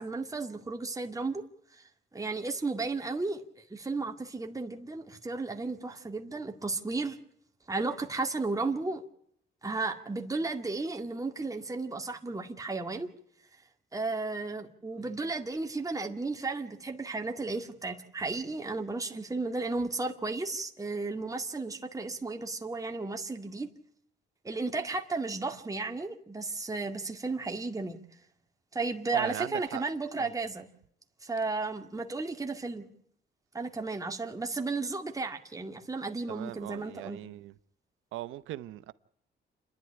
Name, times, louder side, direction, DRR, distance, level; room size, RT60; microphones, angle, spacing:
voice 1, 0.0-1.4 2.1-3.4 3.7-7.2 7.7-9.0 9.6-13.1 13.9-23.7 24.4-28.0 28.7-30.7 31.2-32.8 33.5-37.2, right 3 dB, 15° right, 2.1 m, -34 dB
voice 2, 29.1-29.8 30.1-30.3 36.3-37.5 38.1-38.9, right 15 dB, 90° right, 0.9 m, -39 dB
28.5 x 11.0 x 9.9 m
cardioid pair, 90°, 20 cm